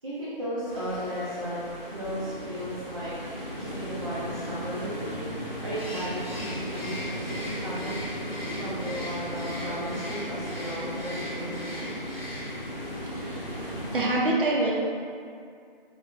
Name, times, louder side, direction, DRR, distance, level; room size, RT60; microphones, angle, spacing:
voice 1, 0.0-1.7 1.9-3.1 3.6-7.9 8.4-11.9, equal, 35° right, -11 dB, 0.6 m, -35 dB
sound 1, 0.7-14.0, equal, 25° left, 0.9 m, -36 dB
Bird, 5.7-12.8, left 1 dB, 85° left, 0.9 m, -41 dB
voice 2, 13.1-13.7 13.9-14.7, right 2 dB, 65° right, -3 dB, 0.9 m, -26 dB
3.8 x 2.6 x 3.2 m, 2.3 s
figure-of-eight pair, 155°, 29 cm